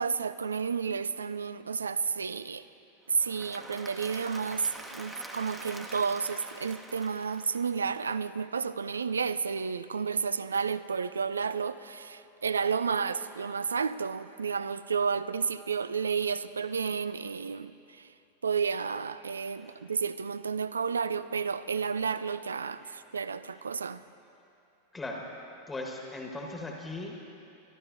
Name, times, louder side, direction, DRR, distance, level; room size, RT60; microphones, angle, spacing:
voice 1, 0.0-2.6 3.1-18.1 18.4-24.0, right 6 dB, 75° right, 14 dB, 0.3 m, -31 dB
Applause / Crowd, 3.1-8.1, right 1 dB, 10° right, 1.1 m, -45 dB
voice 2, 24.9-25.3 25.7-27.2, left 2 dB, 10° left, 1 dB, 1.4 m, -38 dB
26.5 x 12.0 x 2.6 m, 2.7 s
figure-of-eight pair, 90°, 0 cm